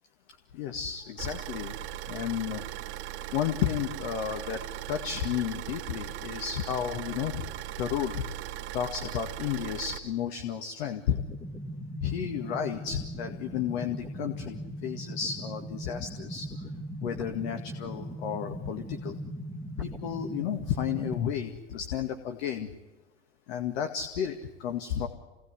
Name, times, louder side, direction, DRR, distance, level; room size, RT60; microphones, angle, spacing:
voice 1, 0.5-1.7 2.1-2.6 3.3-4.6 4.9-7.5 7.8-8.2 8.7-11.2 12.0-16.5 17.0-19.2 19.8-22.7 23.5-25.1, left 9 dB, 60° left, 6 dB, 2.1 m, -32 dB
Car / Idling, 1.2-10.0, right 13 dB, 45° right, 2.2 m, -39 dB
sound 1, 11.1-21.1, equal, 5° left, 2.1 m, -39 dB
26.0 x 18.5 x 9.9 m, 1.2 s
hypercardioid pair, 95°, 35 cm